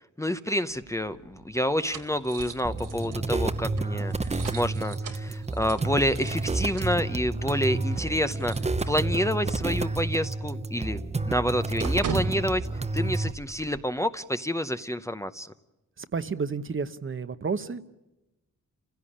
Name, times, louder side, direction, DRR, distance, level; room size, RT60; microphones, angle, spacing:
voice 1, 0.2-8.5 8.9-11.0 11.3-12.7 12.9-15.5, equal, 10° left, 10 dB, 0.8 m, -28 dB
sound 1, 0.7-9.6 9.9-10.0 10.3-13.8, right 5 dB, 85° right, 2.3 m, -41 dB
sound 2, 2.6-13.3, right 3 dB, 20° right, 0.8 m, -30 dB
voice 2, 16.1-18.0, right 5 dB, 40° right, 11 dB, 1.0 m, -31 dB
30.0 x 16.5 x 8.7 m, 0.97 s
wide cardioid pair, 105°, 31 cm